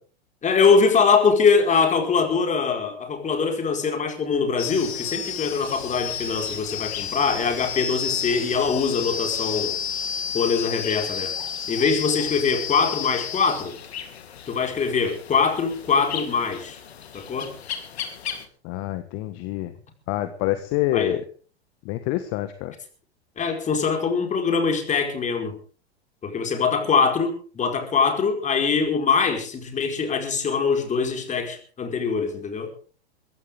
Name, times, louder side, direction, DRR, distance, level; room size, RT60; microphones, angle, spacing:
voice 1, 0.4-9.8 10.3-11.3 11.7-13.8 14.5-16.8 17.1-17.5 20.9-21.2 23.4-25.5 26.2-32.7, left 5 dB, 20° left, 4 dB, 4.8 m, -23 dB
sound 1, 4.6-18.4, left 8 dB, 75° left, 3.3 m, -32 dB
voice 2, 18.6-19.7 20.1-21.2 21.8-22.7, left 15 dB, 45° left, 10 dB, 1.5 m, -26 dB
21.5 x 15.5 x 3.6 m, 0.41 s
hypercardioid pair, 110°, 33 cm